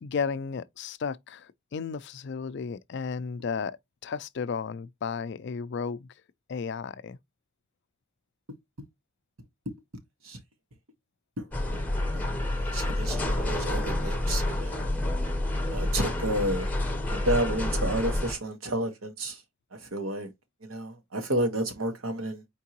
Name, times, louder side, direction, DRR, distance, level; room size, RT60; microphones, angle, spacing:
voice 1, 0.0-6.1 6.5-7.2, left 5 dB, 55° left, 0.4 m, -33 dB
sound 1, 11.5-18.3, left 1 dB, 10° left, 0.8 m, -28 dB
voice 2, 12.6-14.8 15.7-16.7 17.1-19.4 19.7-20.3 20.6-22.4, right 1 dB, 75° right, 1.3 m, -31 dB
4.6 x 3.6 x 2.9 m
head